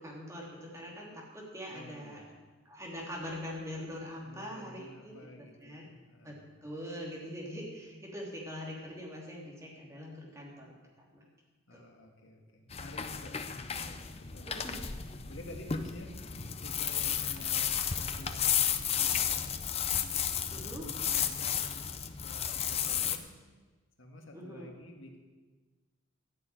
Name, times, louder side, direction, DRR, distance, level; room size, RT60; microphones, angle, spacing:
voice 1, 0.0-2.2 2.6-5.1 5.6-5.9 6.2-10.7 11.1-11.3 11.7-11.8 14.5-14.8 20.5-20.8 24.3-24.7, equal, 15° right, -4 dB, 3.0 m, -43 dB
voice 2, 1.7-2.4 4.2-6.7 11.7-14.8 15.2-17.7 18.0-19.5 20.4-23.3 24.0-25.2, left 1 dB, 75° left, 1 dB, 2.0 m, -50 dB
sound 1, 12.7-23.2, left 8 dB, 30° left, 0.6 m, -33 dB
13.5 x 6.9 x 9.1 m, 1.3 s
head